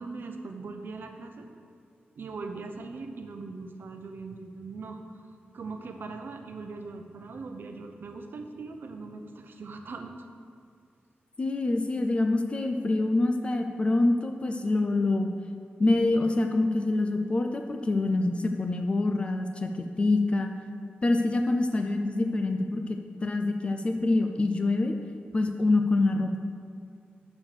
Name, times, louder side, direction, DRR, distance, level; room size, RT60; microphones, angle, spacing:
voice 1, 0.0-1.5 2.1-5.2 5.5-10.1, right 3 dB, 65° right, 5 dB, 0.7 m, -40 dB
voice 2, 11.4-15.3 15.8-20.5 21.0-24.9 25.3-26.4, left 2 dB, 30° left, 5 dB, 0.4 m, -26 dB
6.2 x 6.1 x 6.6 m, 2.3 s
wide cardioid pair, 150°, 4 cm